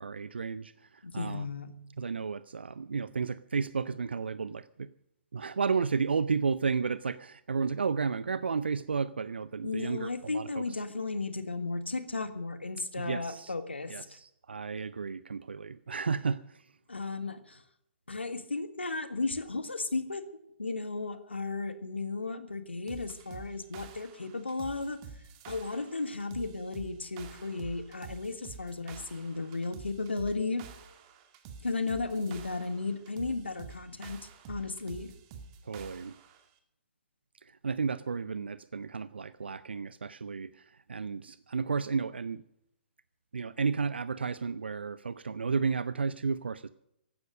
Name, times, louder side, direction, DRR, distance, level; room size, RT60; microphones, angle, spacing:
voice 1, 0.0-1.5 1.7-4.9 5.3-10.8 13.0-13.5 13.9-16.7 35.6-36.1 37.4-42.4 43.3-46.7, right 5 dB, 65° right, 16 dB, 0.6 m, -33 dB
voice 2, 1.0-1.7 9.6-14.2 16.9-17.6 18.1-20.2 20.6-25.0 25.5-30.6 31.6-34.2 34.5-35.1, left 3 dB, 75° left, 10 dB, 1.7 m, -34 dB
sound 1, 22.9-36.4, right 6 dB, 30° right, 2.2 m, -49 dB
16.0 x 12.0 x 6.4 m, 0.78 s
figure-of-eight pair, 125°, 6 cm